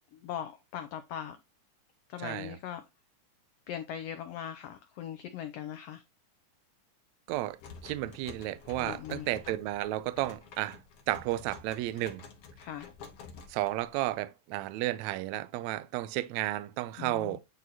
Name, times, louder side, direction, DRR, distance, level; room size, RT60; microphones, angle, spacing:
voice 1, 0.1-1.4 2.1-2.8 3.7-6.0 8.8-9.3 12.6-12.9 17.0-17.4, left 10 dB, 75° left, 1.4 m, -40 dB
voice 2, 2.2-2.6 7.3-7.6 7.8-10.8 11.1-12.2 13.5-17.4, right 16 dB, 80° right, 1.8 m, -33 dB
sound 1, 7.3-14.1, left 5 dB, 60° left, 1.9 m, -49 dB
9.2 x 4.0 x 2.7 m
omnidirectional pair, 3.5 m